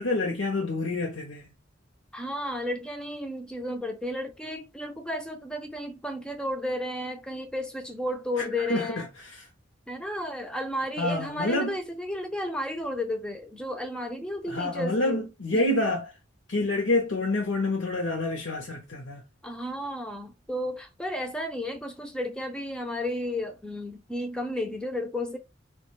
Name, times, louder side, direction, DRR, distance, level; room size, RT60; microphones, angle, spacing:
voice 1, 0.0-1.5 8.4-9.5 11.0-11.8 14.5-16.1 16.5-19.2, left 2 dB, 70° left, 0.6 m, -28 dB
voice 2, 2.1-9.1 9.9-15.3 15.5-15.8 19.4-25.4, left 1 dB, 5° left, 0.4 m, -33 dB
3.1 x 2.2 x 3.0 m
head